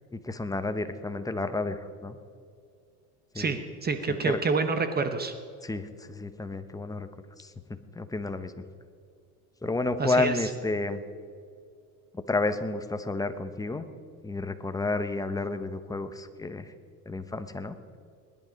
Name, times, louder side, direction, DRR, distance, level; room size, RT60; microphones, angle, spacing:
voice 1, 0.1-2.2 3.3-3.5 4.1-4.4 5.6-7.1 7.4-7.5 7.9-8.5 9.6-11.0 12.3-13.9 14.2-16.7 17.1-17.8, left 2 dB, 10° left, 9 dB, 0.9 m, -31 dB
voice 2, 3.3-5.3 10.0-10.3, right 4 dB, 20° right, 8 dB, 1.0 m, -28 dB
19.5 x 11.0 x 5.2 m, 2.3 s
supercardioid pair, 110°, 47 cm